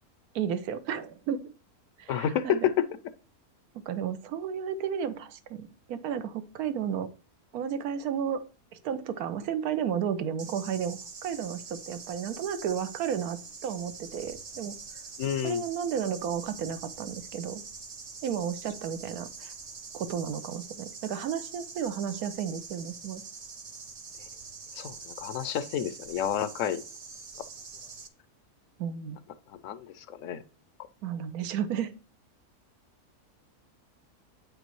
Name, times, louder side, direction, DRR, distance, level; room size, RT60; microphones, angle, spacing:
voice 1, 0.3-1.5 2.0-2.7 3.7-7.1 7.5-8.4 8.8-14.8 15.4-17.6 18.2-19.5 19.9-23.2 28.8-29.2 31.0-31.9, right 8 dB, 75° right, 1.2 m, -33 dB
voice 2, 2.1-2.9 15.2-15.6 24.7-26.8 29.6-30.4, left 9 dB, 70° left, 0.9 m, -29 dB
sound 1, 10.4-28.1, right 5 dB, 55° right, 0.4 m, -44 dB
9.0 x 5.2 x 3.1 m
omnidirectional pair, 1.6 m